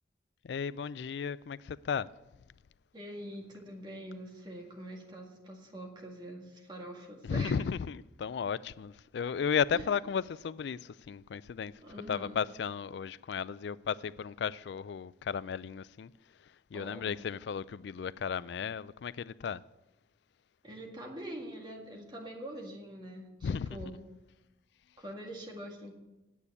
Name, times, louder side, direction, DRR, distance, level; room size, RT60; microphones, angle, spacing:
voice 1, 0.4-2.1 7.3-11.7 12.1-16.1 16.7-19.6 23.4-23.8, left 6 dB, 70° left, 0.3 m, -34 dB
voice 2, 2.9-7.6 9.7-9.9 11.8-12.4 16.7-17.2 20.6-24.0 25.0-25.9, right 1 dB, 25° right, 1.9 m, -44 dB
9.3 x 8.3 x 8.5 m
head